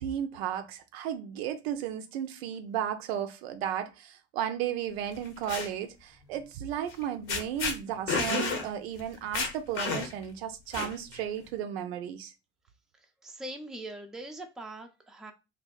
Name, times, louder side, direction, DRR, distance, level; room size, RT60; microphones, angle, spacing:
voice 1, 0.0-12.3, right 10 dB, 70° right, 0.5 m, -34 dB
sound 1, 5.1-5.7 6.9-7.0 7.3-7.7 8.1-8.6 9.0-9.1 9.3-10.2 10.7-11.2, left 4 dB, 55° left, 0.8 m, -30 dB
voice 2, 13.2-15.3, right 1 dB, ahead, 0.4 m, -41 dB
2.6 x 2.1 x 2.3 m
figure-of-eight pair, 55°, 33 cm